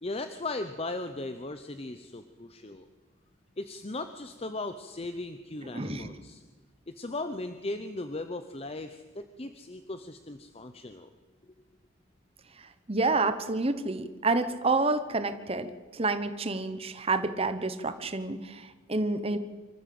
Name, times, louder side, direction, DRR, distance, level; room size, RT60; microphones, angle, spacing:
voice 1, 0.0-2.9 3.6-6.4 6.9-11.1, left 2 dB, 30° left, 9 dB, 0.7 m, -37 dB
voice 2, 5.7-6.1 12.9-19.4, right 3 dB, 30° right, 10 dB, 1.0 m, -29 dB
25.0 x 14.0 x 7.8 m, 1.4 s
head